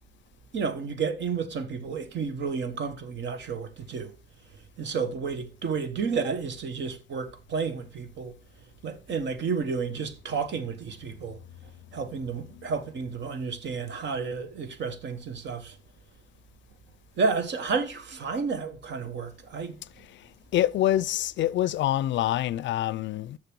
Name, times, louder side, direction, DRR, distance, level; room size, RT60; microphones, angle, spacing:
voice 1, 0.5-4.1 4.8-8.3 8.8-11.4 11.9-15.8 17.2-19.8, right 5 dB, 65° right, 1.3 m, -31 dB
voice 2, 20.0-23.4, left 13 dB, 70° left, 0.4 m, -27 dB
6.8 x 6.5 x 6.2 m
cardioid pair, 90°, 20 cm